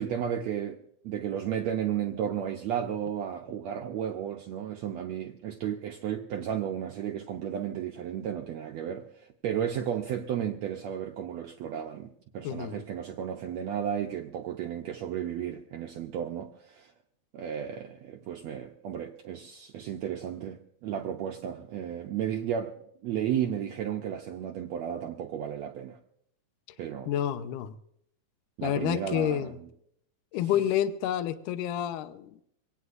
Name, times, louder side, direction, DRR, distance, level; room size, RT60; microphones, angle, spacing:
voice 1, 0.0-16.9 17.3-22.8 23.0-26.0 26.8-27.1 28.6-29.7 30.4-30.6, right 9 dB, 80° right, 1.6 m, -33 dB
voice 2, 12.4-12.8 27.1-27.7 28.6-29.6 30.3-32.3, left 10 dB, 75° left, 2.3 m, -29 dB
25.0 x 17.5 x 2.5 m
omnidirectional pair, 4.1 m